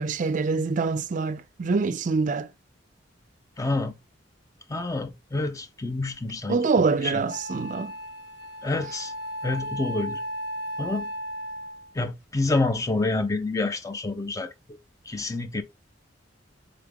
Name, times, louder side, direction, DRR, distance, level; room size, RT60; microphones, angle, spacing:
voice 1, 0.0-2.5 6.5-7.9, right 4 dB, 45° right, 0.4 m, -25 dB
voice 2, 3.6-4.0 4.7-7.1 8.6-9.1 9.4-10.2 10.8-11.1 11.9-14.8 15.1-15.6, left 2 dB, 20° left, 0.5 m, -28 dB
Wind instrument woodwind instrument, 6.6-6.7 7.3-11.9, equal, 60° left, 2.5 m, -35 dB
3.8 x 3.4 x 3.5 m
head